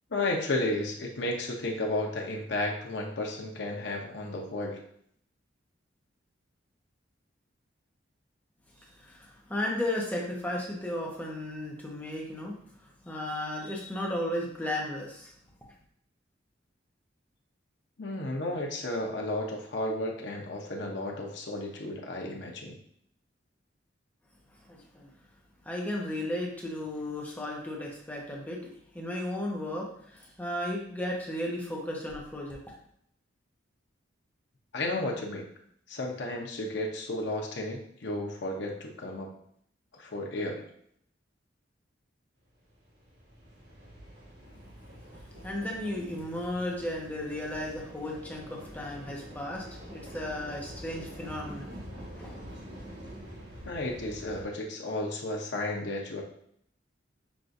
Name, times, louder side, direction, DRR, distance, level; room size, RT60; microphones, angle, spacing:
voice 1, 0.1-4.8 18.0-22.8 34.7-35.4 35.9-39.3 40.0-40.6 53.6-56.2, left 2 dB, 65° left, 0 dB, 0.7 m, -33 dB
voice 2, 8.9-15.3 24.7-25.1 25.6-28.6 28.9-32.6 45.4-51.7 52.0-52.4, left 1 dB, 10° left, -2 dB, 0.7 m, -35 dB
sound 1, 42.5-54.4, equal, 75° right, 1.6 m, -46 dB
6.0 x 2.4 x 2.6 m, 0.67 s
head